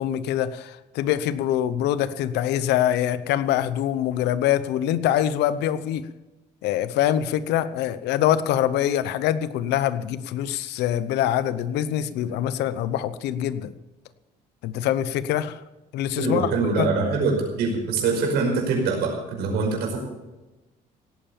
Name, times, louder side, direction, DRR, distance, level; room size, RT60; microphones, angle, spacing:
voice 1, 0.0-6.1 6.6-13.7 14.6-15.6 15.9-16.5 16.8-16.9, left 11 dB, 85° left, 15 dB, 0.8 m, -24 dB
voice 2, 16.1-20.0, right 4 dB, 80° right, 2 dB, 5.3 m, -24 dB
17.5 x 8.9 x 7.2 m, 1.1 s
cardioid pair, 110°, 17 cm